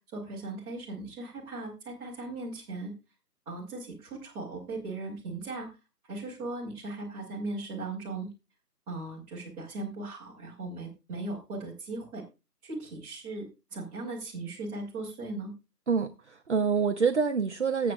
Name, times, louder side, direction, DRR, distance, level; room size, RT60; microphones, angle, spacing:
voice 1, 0.1-2.9 3.5-5.7 6.1-8.3 8.9-12.2 12.6-15.5, right 2 dB, 10° right, 2.4 m, -38 dB
voice 2, 15.9-17.9, right 5 dB, 45° right, 0.7 m, -26 dB
19.5 x 7.7 x 2.3 m
figure-of-eight pair, 155°, 49 cm